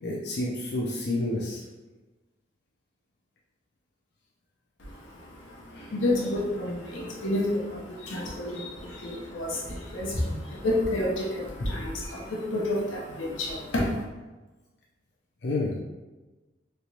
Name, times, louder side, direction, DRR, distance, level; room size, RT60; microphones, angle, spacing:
voice 1, 0.0-1.6 5.8-5.9 15.4-15.8, left 2 dB, 55° left, -3 dB, 0.4 m, -29 dB
voice 2, 4.8-14.0, left 1 dB, 90° left, -3 dB, 0.8 m, -30 dB
3.2 x 2.9 x 2.8 m, 1.2 s
head